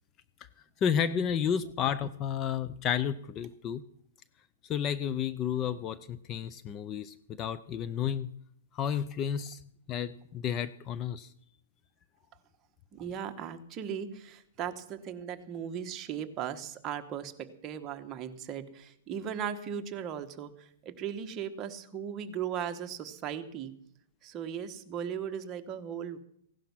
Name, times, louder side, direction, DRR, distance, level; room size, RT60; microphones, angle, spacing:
voice 1, 0.8-3.8 4.7-8.3 8.7-9.6 9.9-11.3, left 8 dB, 25° left, 14 dB, 0.5 m, -31 dB
voice 2, 12.9-23.7 24.2-26.2, right 8 dB, 25° right, 7 dB, 1.3 m, -37 dB
16.5 x 11.5 x 6.1 m, 0.68 s
hypercardioid pair, 155°, 0 cm